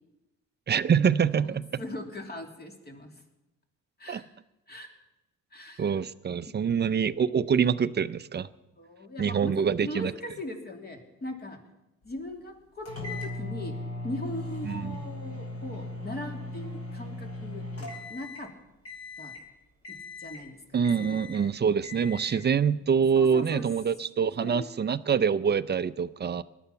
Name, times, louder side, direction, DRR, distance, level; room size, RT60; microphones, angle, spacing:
voice 1, 0.7-1.8 4.1-4.2 5.8-8.5 9.2-10.1 14.6-15.0 20.7-26.4, right 7 dB, 35° right, 0.6 m, -25 dB
voice 2, 1.8-3.2 4.0-4.2 4.7-4.9 5.5-6.0 6.5-6.6 8.7-11.6 12.0-13.8 14.0-18.5 19.2-19.4 19.9-20.6 21.0-21.2 23.1-23.7 24.2-24.7, left 1 dB, 35° left, 3.0 m, -40 dB
sound 1, 12.8-18.5 18.8-19.4 19.8-20.5 20.8-21.4 21.8-22.5, left 2 dB, 50° left, 4.9 m, -38 dB
18.5 x 12.0 x 5.8 m
cardioid pair, 90°, 30 cm